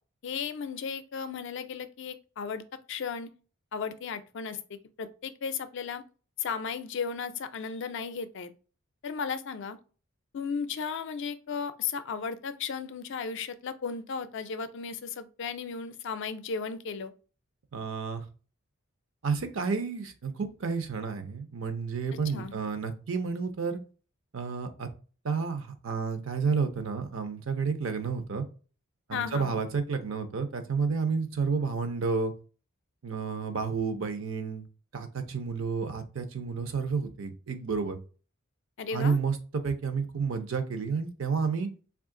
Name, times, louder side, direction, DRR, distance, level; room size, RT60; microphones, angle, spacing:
voice 1, 0.2-2.6 2.9-3.3 3.7-6.0 6.4-8.5 9.0-9.8 10.3-17.1 22.3-22.6 29.1-29.6 38.8-39.2, left 6 dB, 60° left, 0.4 m, -35 dB
voice 2, 17.7-18.2 19.2-23.8 24.3-24.9 25.2-28.4 29.1-32.3 33.0-34.7 34.9-38.0 38.9-41.7, right 5 dB, 65° right, 0.6 m, -30 dB
3.1 x 2.4 x 3.6 m
head